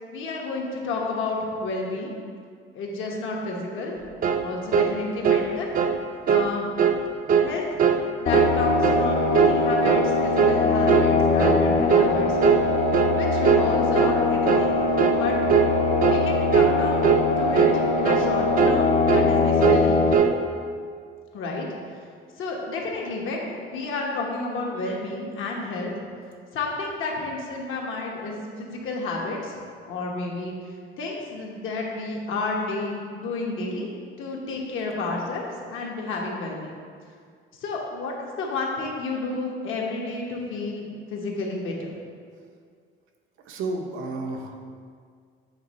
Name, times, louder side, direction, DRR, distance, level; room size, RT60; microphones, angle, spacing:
voice 1, 0.1-2.1 2.7-4.0 4.4-5.7 6.3-6.6 7.4-7.6 8.2-12.4 13.1-14.8 15.1-15.4 16.1-17.7 17.9-20.1 21.3-21.7 22.4-25.9 26.5-29.6 29.9-30.6 31.0-33.9 34.2-36.7 37.6-41.9, left 3 dB, 75° left, -1 dB, 1.1 m, -31 dB
sound 1, 4.2-4.5 4.7-4.9 5.2-5.5 5.7-6.0 6.3-6.5 6.8-7.0 7.3-7.5 7.8-8.0 8.3-8.5 8.8-9.1 9.3-9.6 9.8-10.1 10.4-10.6 10.9-11.1 11.4-11.6 11.9-12.1 12.4-12.6 12.9-13.2 13.4-13.7 13.9-14.2 14.5-14.7 15.0-15.2 15.5-15.7 16.0-16.2 16.5-16.8 17.0-17.2 17.5-17.8 18.0-18.3 18.6-18.8 19.1-19.3 19.6-19.9 20.1-20.4, right 7 dB, 45° right, 0.4 m, -20 dB
sound 2, 8.3-20.1, left 3 dB, 35° left, 0.5 m, -22 dB
voice 2, 43.5-44.6, right 2 dB, 80° right, 2 dB, 0.7 m, -31 dB
8.0 x 3.1 x 4.1 m, 2.1 s
cardioid pair, 125°, 21 cm